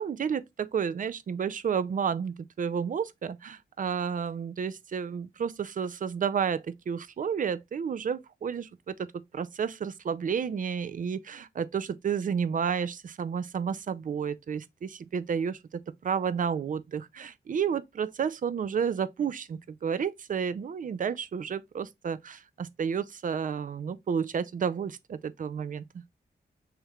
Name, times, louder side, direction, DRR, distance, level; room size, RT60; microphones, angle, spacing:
voice 1, 0.0-8.9 9.3-26.0, right 7 dB, 50° right, 0.4 m, -31 dB
6.4 x 3.1 x 2.3 m
wide cardioid pair, 120°, 17 cm